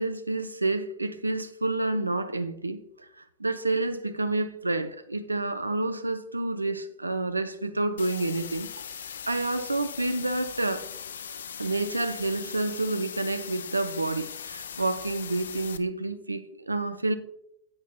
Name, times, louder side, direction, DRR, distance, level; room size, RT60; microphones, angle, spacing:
voice 1, 0.0-8.7 9.3-10.9 11.6-17.2, right 2 dB, 80° right, 0.4 m, -29 dB
sound 1, 8.0-15.8, left 7 dB, 65° left, 0.4 m, -40 dB
9.5 x 8.2 x 2.2 m
figure-of-eight pair, 90°, 0 cm